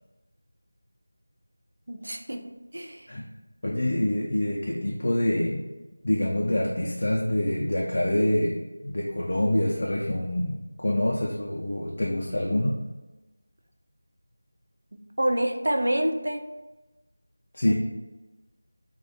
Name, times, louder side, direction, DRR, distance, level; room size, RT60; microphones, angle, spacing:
voice 1, 1.9-2.4 2.7-3.1 15.2-16.4 17.7-17.8, right 1 dB, 65° right, 4 dB, 0.3 m, -27 dB
voice 2, 3.6-5.6 6.0-12.8 17.5-17.7, left 1 dB, 55° left, -3 dB, 0.3 m, -26 dB
2.3 x 2.1 x 2.7 m, 1.1 s
figure-of-eight pair, 170°, 0 cm